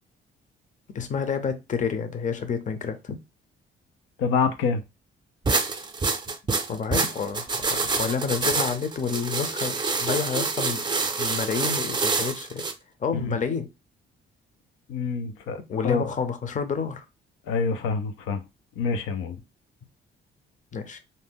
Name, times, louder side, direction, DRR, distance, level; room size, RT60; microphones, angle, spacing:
voice 1, 0.9-3.2 6.7-12.6 13.0-13.7 15.7-17.1 20.7-21.0, left 6 dB, 40° left, 0.6 m, -29 dB
voice 2, 4.2-4.8 13.1-13.3 14.9-16.1 17.5-18.4 18.8-19.4, left 5 dB, 90° left, 0.5 m, -26 dB
sound 1, 5.5-12.7, right 4 dB, 20° right, 0.5 m, -27 dB
2.7 x 2.1 x 3.5 m
cardioid pair, 90°, 20 cm